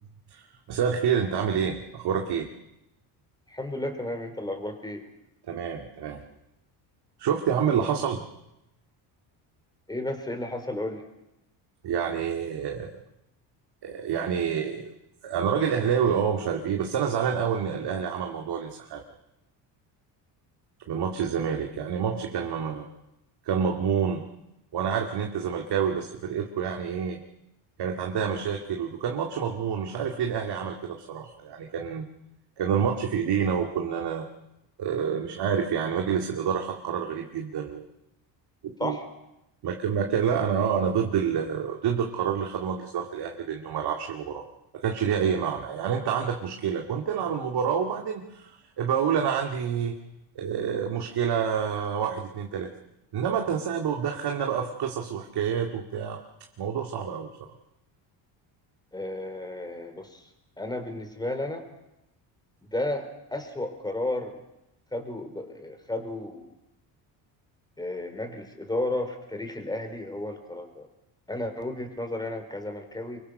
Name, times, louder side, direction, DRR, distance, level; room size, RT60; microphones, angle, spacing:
voice 1, 0.3-2.5 5.5-6.2 7.2-8.3 11.8-12.9 13.8-14.9 15.2-19.0 20.9-22.9 23.4-24.2 24.7-27.2 27.8-32.0 32.6-34.3 34.8-37.9 38.8-39.0 39.6-44.4 44.7-50.0 50.4-52.7 53.1-56.2 56.6-57.3, right 7 dB, 60° right, 2 dB, 2.4 m, -28 dB
voice 2, 3.5-5.0 7.7-7.9 9.9-11.0 28.2-28.4 38.8-39.0 58.9-60.2 60.6-61.6 62.7-63.0 63.3-64.4 64.9-66.5 67.8-70.9 71.3-73.2, left 1 dB, 10° left, 6 dB, 4.3 m, -33 dB
25.5 x 22.5 x 6.6 m, 0.88 s
cardioid pair, 110°, 46 cm